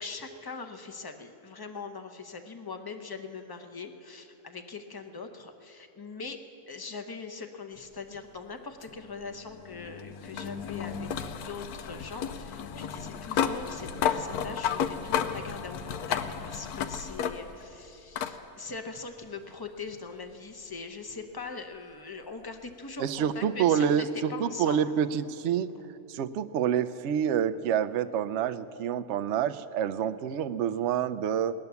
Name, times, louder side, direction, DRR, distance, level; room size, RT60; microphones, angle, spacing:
voice 1, 0.0-6.4 6.7-24.8, left 4 dB, 20° left, 5 dB, 0.7 m, -41 dB
sound 1, 8.8-17.7 18.2-18.4 19.7-19.8 22.7-22.8, left 8 dB, 85° left, 1.2 m, -33 dB
voice 2, 23.0-25.7 26.1-31.5, right 8 dB, 65° right, 10 dB, 0.7 m, -27 dB
19.0 x 10.5 x 7.0 m, 2.9 s
omnidirectional pair, 1.6 m